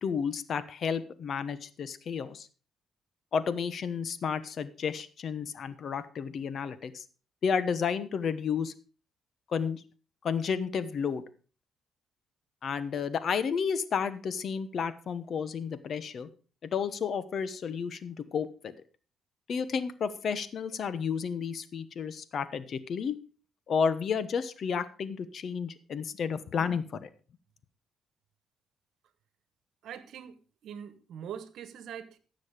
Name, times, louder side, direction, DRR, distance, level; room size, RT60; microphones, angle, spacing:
voice 1, 0.0-2.5 3.3-7.0 7.4-8.7 9.5-9.8 10.2-11.2 12.6-16.3 16.7-18.7 19.5-23.2 23.7-27.1, left 6 dB, 55° left, 14 dB, 1.1 m, -31 dB
voice 2, 29.8-32.2, right 9 dB, 75° right, 13 dB, 1.2 m, -43 dB
15.0 x 6.5 x 5.1 m, 0.37 s
cardioid pair, 90°, 0 cm